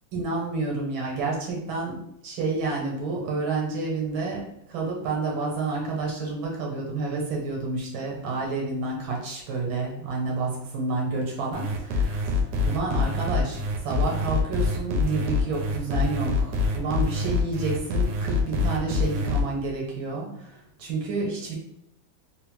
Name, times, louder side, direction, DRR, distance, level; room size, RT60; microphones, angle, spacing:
voice 1, 0.1-2.0 2.2-12.2 12.7-21.6, right 3 dB, 90° right, -1 dB, 1.7 m, -29 dB
sound 1, 11.5-19.4, left 3 dB, 70° right, 1.0 m, -25 dB
3.9 x 2.0 x 3.0 m, 0.77 s
omnidirectional pair, 2.1 m